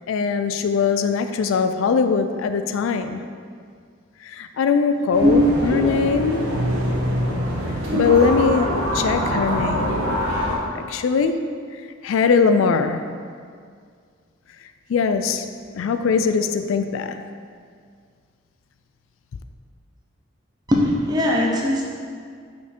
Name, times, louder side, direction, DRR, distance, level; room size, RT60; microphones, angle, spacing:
voice 1, 0.1-3.2 4.2-6.5 7.9-10.2 10.7-11.5 12.0-13.0 14.9-15.5 15.7-17.2, left 5 dB, 75° left, 9 dB, 0.3 m, -21 dB
sound 1, 5.1-10.6, equal, 85° right, 1.2 m, -24 dB
voice 2, 20.7-21.8, left 1 dB, 20° right, -2 dB, 0.8 m, -20 dB
5.5 x 4.4 x 4.4 m, 2.1 s
head